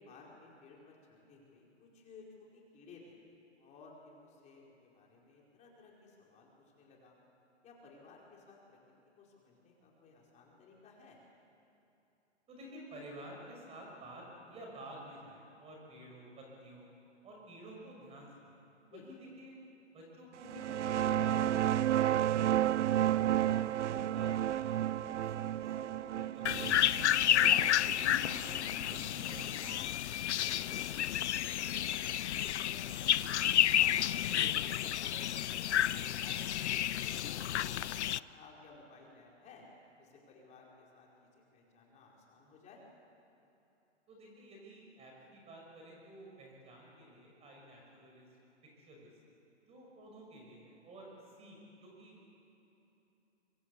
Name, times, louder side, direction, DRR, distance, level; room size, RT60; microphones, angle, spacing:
voice 1, 0.0-7.2 7.6-8.8 9.2-11.2 18.9-19.1 27.3-31.0 31.5-36.8 37.1-39.7 40.0-42.8, left 4 dB, 20° left, -2 dB, 4.9 m, -57 dB
voice 2, 12.5-16.9 17.2-19.5 19.9-23.1 23.5-26.6 44.1-48.3 48.8-49.1 49.7-52.2, right 1 dB, 15° right, -1 dB, 5.6 m, -52 dB
sound 1, 20.4-29.7, right 11 dB, 75° right, 0.6 m, -32 dB
sound 2, 26.5-38.2, left 11 dB, 70° left, 0.7 m, -31 dB
25.5 x 24.0 x 8.3 m, 3.0 s
hypercardioid pair, 145°, 36 cm